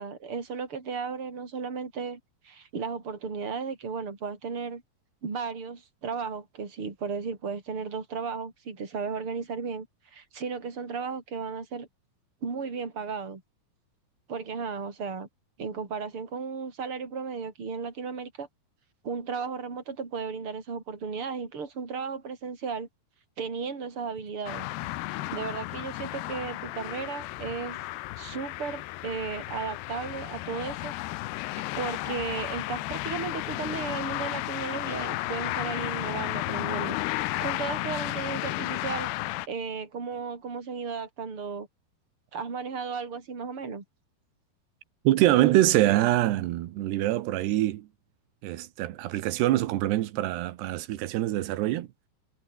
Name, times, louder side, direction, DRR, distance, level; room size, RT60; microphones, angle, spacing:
voice 1, 0.0-4.8 5.2-9.9 10.1-11.9 12.4-13.4 14.3-15.3 15.6-18.5 19.0-22.9 23.4-24.7 25.3-27.8 28.2-30.9 31.7-39.1 39.5-41.7 42.3-43.8, right 5 dB, 30° right, 5.2 m, -35 dB
sound 1, 24.5-39.5, left 18 dB, 90° left, 2.9 m, -33 dB
voice 2, 45.1-47.9 48.4-51.9, right 15 dB, 85° right, 3.3 m, -24 dB
omnidirectional pair, 4.7 m